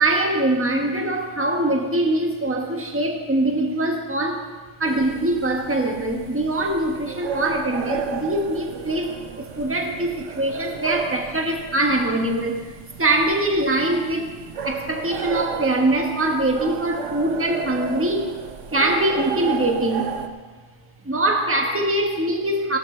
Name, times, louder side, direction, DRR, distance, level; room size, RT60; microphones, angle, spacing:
voice 1, 0.0-4.5 4.8-12.7 13.0-14.3 14.6-18.3 18.7-20.1 21.0-22.8, right 1 dB, 10° right, 1 dB, 1.3 m, -23 dB
sound 1, 4.9-20.3, right 7 dB, 90° right, 1.2 m, -33 dB
17.5 x 12.5 x 3.3 m, 1.3 s
omnidirectional pair, 1.2 m